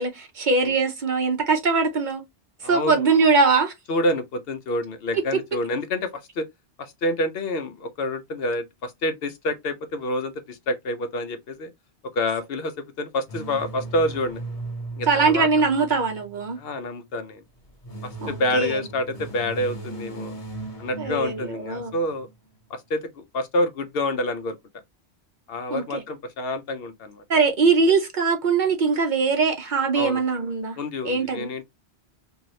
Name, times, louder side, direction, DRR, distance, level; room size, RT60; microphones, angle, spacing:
voice 1, 0.0-2.2 2.6-3.7 15.1-16.6 18.2-18.8 21.0-21.9 25.7-26.0 27.3-30.8 31.0-31.5, right 4 dB, 50° right, 0.7 m, -22 dB
voice 2, 2.6-3.1 3.9-6.5 6.8-11.7 12.1-14.4 15.0-15.5 16.6-17.4 18.0-20.3 20.8-22.3 22.7-24.6 25.5-27.2 29.9-30.2 30.8-31.6, left 1 dB, 65° left, 0.8 m, -28 dB
sound 1, 13.3-16.7 17.6-22.4, right 2 dB, 35° left, 1.0 m, -37 dB
2.7 x 2.6 x 3.0 m
omnidirectional pair, 1.1 m